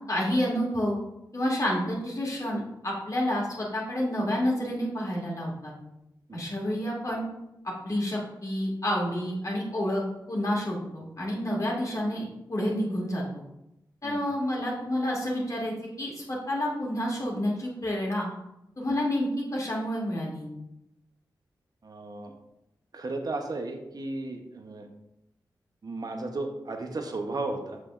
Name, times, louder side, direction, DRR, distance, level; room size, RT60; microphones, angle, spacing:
voice 1, 0.1-1.0 1.3-5.7 6.3-7.2 7.8-10.0 10.3-13.2 14.0-18.3 18.8-20.5, equal, 45° left, -3 dB, 2.2 m, -29 dB
voice 2, 21.8-22.3 22.9-24.9 25.8-27.8, right 2 dB, 55° right, 4 dB, 1.0 m, -34 dB
7.3 x 5.2 x 2.5 m, 0.88 s
cardioid pair, 50°, 8 cm